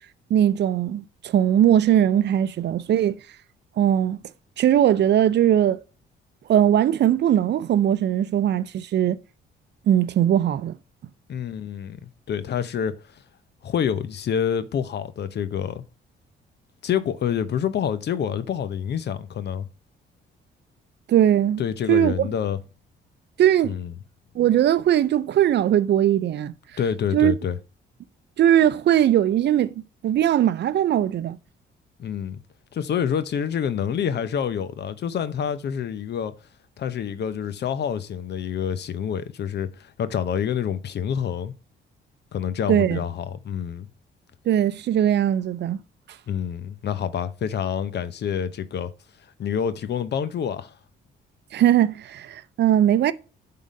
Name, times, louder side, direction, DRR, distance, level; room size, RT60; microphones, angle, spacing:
voice 1, 0.3-3.2 3.8-4.2 4.6-5.8 6.5-9.2 9.9-10.8 21.1-21.6 21.9-22.3 23.4-23.7 24.4-26.5 27.1-27.4 28.4-29.7 30.0-31.4 42.7-43.0 44.5-45.8 51.5-53.1, right 11 dB, 60° right, 0.6 m, -20 dB
voice 2, 11.3-13.2 13.6-15.8 16.8-19.7 21.6-22.6 23.6-23.9 26.8-27.6 32.0-32.4 32.7-36.3 36.8-41.5 42.3-43.9 46.3-48.9 49.4-50.7, left 8 dB, 60° left, 0.8 m, -27 dB
7.3 x 3.9 x 5.3 m
cardioid pair, 90°, 20 cm